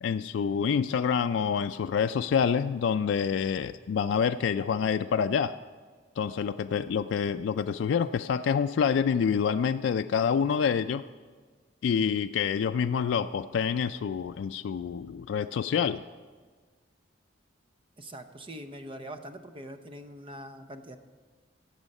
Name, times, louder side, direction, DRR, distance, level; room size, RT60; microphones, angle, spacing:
voice 1, 0.0-5.6 6.2-11.0 11.8-16.0, left 7 dB, 75° left, 9 dB, 0.3 m, -27 dB
voice 2, 6.3-6.6 18.0-21.0, right 1 dB, 30° right, 8 dB, 0.7 m, -43 dB
17.5 x 7.2 x 5.4 m, 1.4 s
head